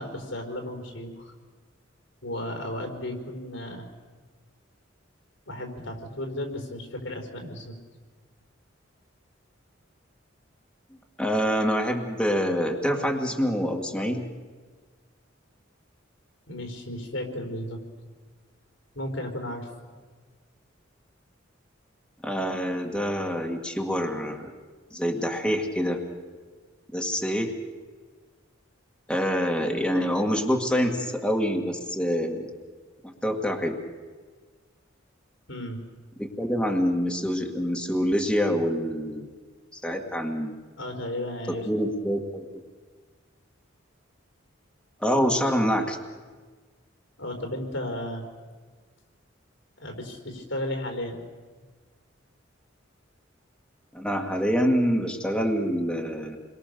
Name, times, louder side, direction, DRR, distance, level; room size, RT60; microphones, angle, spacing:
voice 1, 0.0-1.3 2.2-3.9 5.5-7.7 16.5-17.8 18.9-19.7 35.5-35.8 40.8-41.7 45.3-45.4 47.2-48.3 49.8-51.2, left 1 dB, 80° left, 3 dB, 4.6 m, -34 dB
voice 2, 11.2-14.3 22.2-24.5 24.9-26.0 26.9-27.5 29.1-32.5 33.0-33.8 36.2-39.3 39.7-40.5 41.7-42.4 45.0-46.0 53.9-56.4, equal, 5° left, 1 dB, 1.9 m, -26 dB
29.0 x 22.5 x 6.8 m, 1.5 s
head